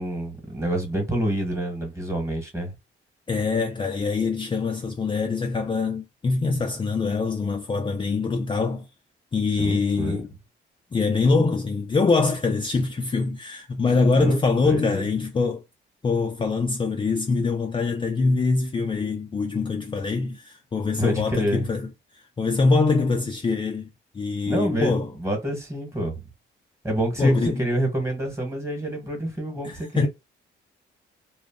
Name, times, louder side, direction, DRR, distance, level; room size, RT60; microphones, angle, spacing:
voice 1, 0.0-2.7 9.6-10.2 14.1-15.0 21.0-21.6 24.4-26.2 26.8-30.1, right 1 dB, 15° right, 1.3 m, -27 dB
voice 2, 3.3-8.9 9.3-10.3 10.9-15.6 16.0-21.9 22.4-23.9 24.1-25.1 27.2-27.6 29.6-30.1, left 4 dB, 25° left, 0.4 m, -24 dB
2.4 x 2.0 x 3.5 m
cardioid pair, 90°, 20 cm